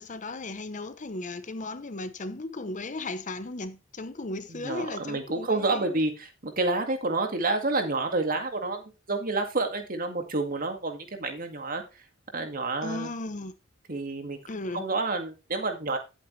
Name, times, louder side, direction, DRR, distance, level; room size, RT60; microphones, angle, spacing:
voice 1, 0.0-6.0 12.8-13.5 14.5-14.9, left 2 dB, 40° left, 0.8 m, -36 dB
voice 2, 4.5-8.8 9.1-11.8 12.3-13.1 13.9-14.4 14.7-16.0, right 3 dB, 45° right, 2.1 m, -29 dB
11.0 x 8.3 x 3.2 m
head